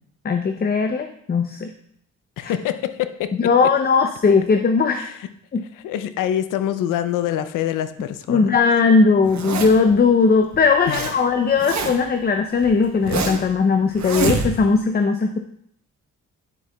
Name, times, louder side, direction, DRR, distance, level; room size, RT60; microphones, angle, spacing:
voice 1, 0.2-1.7 2.4-2.5 3.4-5.1 5.5-5.6 8.3-15.4, left 4 dB, 30° left, 6 dB, 0.6 m, -18 dB
voice 2, 2.4-3.5 5.0-5.1 5.7-8.5 10.9-11.1, left 11 dB, 80° left, 11 dB, 0.6 m, -25 dB
Zipper (clothing), 9.2-9.9 10.5-11.1 11.4-12.1 12.6-13.5 14.0-14.8, right 4 dB, 60° right, 1.2 m, -25 dB
9.2 x 7.4 x 2.3 m, 0.69 s
supercardioid pair, 60°, 31 cm